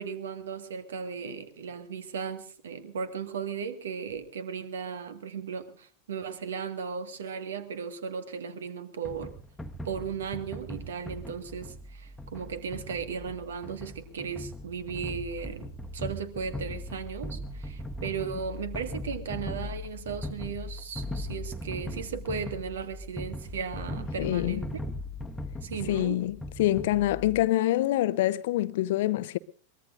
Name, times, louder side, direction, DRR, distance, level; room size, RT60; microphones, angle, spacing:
voice 1, 0.0-9.3 9.9-24.7 25.6-26.2, right 6 dB, 65° right, 1.8 m, -36 dB
sound 1, 9.0-27.4, left 1 dB, 5° left, 1.3 m, -39 dB
voice 2, 24.2-24.6 25.9-29.4, left 15 dB, 55° left, 0.8 m, -26 dB
23.0 x 21.0 x 2.6 m
figure-of-eight pair, 90°, 0 cm